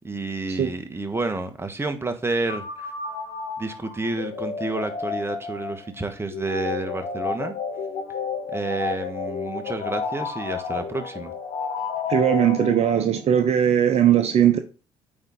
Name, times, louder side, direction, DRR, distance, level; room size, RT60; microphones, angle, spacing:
voice 1, 0.0-2.9 3.6-7.5 8.5-11.3, right 3 dB, 20° right, 1.5 m, -30 dB
sound 1, 2.5-13.2, left 5 dB, 65° left, 1.5 m, -31 dB
voice 2, 12.1-14.6, right 9 dB, 55° right, 0.8 m, -19 dB
8.7 x 4.2 x 3.8 m
hypercardioid pair, 55°, 13 cm